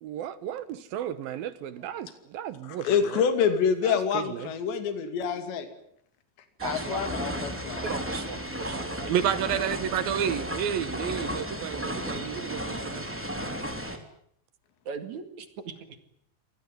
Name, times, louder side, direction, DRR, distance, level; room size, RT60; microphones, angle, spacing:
voice 1, 0.0-3.2 3.8-4.5 8.7-13.0, right 10 dB, 65° right, 14 dB, 2.6 m, -32 dB
voice 2, 2.6-5.7 6.6-7.8, left 7 dB, 75° left, 8 dB, 4.7 m, -27 dB
sound 1, 6.6-14.0, equal, 5° right, 2.1 m, -34 dB
voice 3, 6.6-7.0 7.8-9.1 14.8-16.0, right 6 dB, 50° right, 9 dB, 2.9 m, -38 dB
26.5 x 19.0 x 9.3 m, 0.68 s
omnidirectional pair, 5.1 m